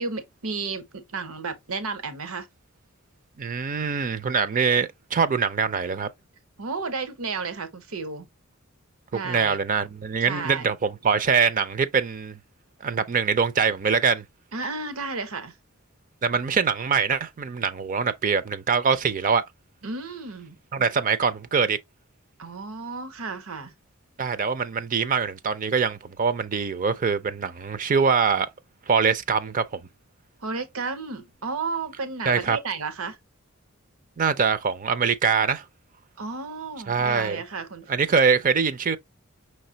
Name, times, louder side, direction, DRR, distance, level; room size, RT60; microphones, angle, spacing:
voice 1, 0.0-2.5 6.6-8.3 9.1-9.6 10.2-10.7 14.5-15.5 19.8-20.8 22.4-23.7 30.4-33.2 36.2-37.8, right 4 dB, 80° right, 0.9 m, -32 dB
voice 2, 3.4-6.1 9.2-12.4 12.8-14.2 16.2-19.4 20.7-21.8 24.2-28.5 28.9-29.8 32.3-32.6 34.2-35.6 36.9-37.4 37.9-39.0, right 5 dB, 40° right, 0.4 m, -23 dB
5.5 x 3.2 x 2.7 m
head